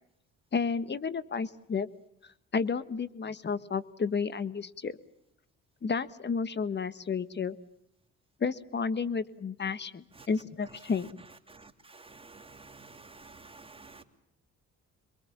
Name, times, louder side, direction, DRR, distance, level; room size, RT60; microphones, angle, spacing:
voice 1, 0.5-1.9 2.5-5.0 5.8-7.6 8.4-11.2, left 5 dB, 35° left, 15 dB, 1.4 m, -31 dB
voice 2, 11.5-14.0, right 3 dB, 20° right, 6 dB, 2.9 m, -51 dB
27.5 x 22.5 x 7.3 m, 0.77 s
cardioid pair, 90°, 30 cm